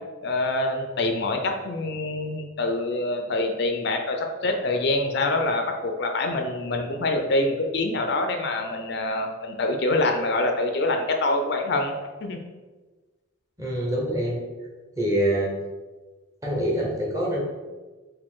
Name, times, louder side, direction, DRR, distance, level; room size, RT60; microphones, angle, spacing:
voice 1, 0.2-12.4, left 2 dB, 55° left, 4 dB, 0.4 m, -25 dB
voice 2, 13.6-14.4 15.0-15.6 16.4-17.4, equal, 15° right, -2 dB, 0.8 m, -25 dB
4.9 x 2.5 x 3.6 m, 1.3 s
head